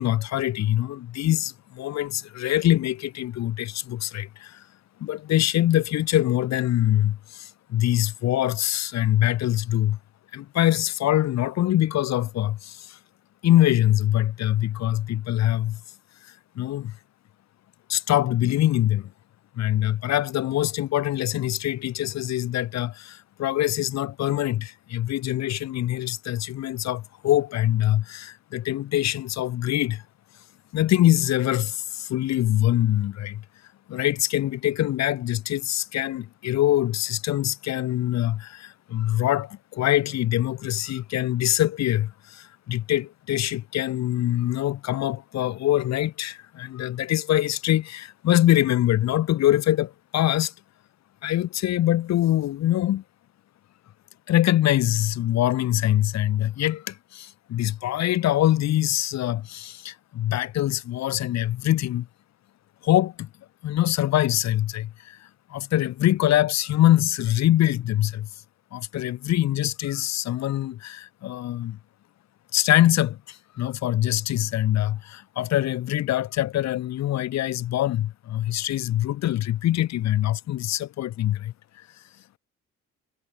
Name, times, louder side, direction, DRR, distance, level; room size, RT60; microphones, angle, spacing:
voice 1, 0.0-4.6 5.0-10.0 10.3-13.0 13.4-15.8 16.2-16.9 17.9-19.1 19.6-30.0 30.7-33.4 33.9-50.5 51.2-53.0 54.3-62.1 62.8-63.3 63.6-68.3 68.7-71.8 72.5-81.5, left 13 dB, 60° left, 0.7 m, -24 dB
cardioid pair, 90°, 30 cm